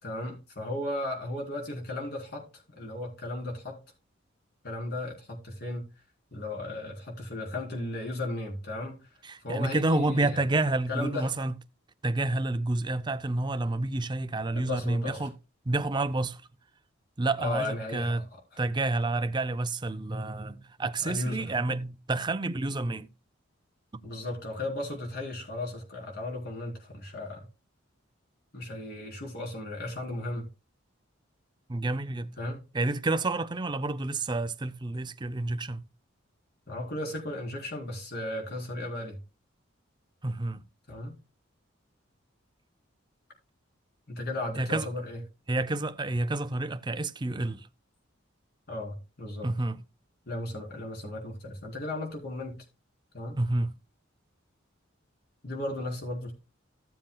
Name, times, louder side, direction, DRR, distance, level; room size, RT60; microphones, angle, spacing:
voice 1, 0.0-3.8 4.6-5.8 6.3-9.0 9.4-10.4 10.9-11.3 14.5-15.3 17.4-18.2 21.0-21.4 24.0-27.5 28.5-30.5 32.4-32.6 36.7-39.2 40.9-41.2 44.1-45.2 48.7-49.5 50.3-52.6 53.1-53.4 55.4-56.3, left 1 dB, 55° left, 3.8 m, -35 dB
voice 2, 9.2-11.5 12.0-15.3 15.7-16.4 17.2-18.2 18.6-23.1 31.7-32.3 32.7-35.8 40.2-40.6 44.6-44.9 45.5-47.7 49.4-49.8 53.4-53.7, right 2 dB, 20° right, 0.5 m, -29 dB
16.0 x 7.5 x 2.3 m
head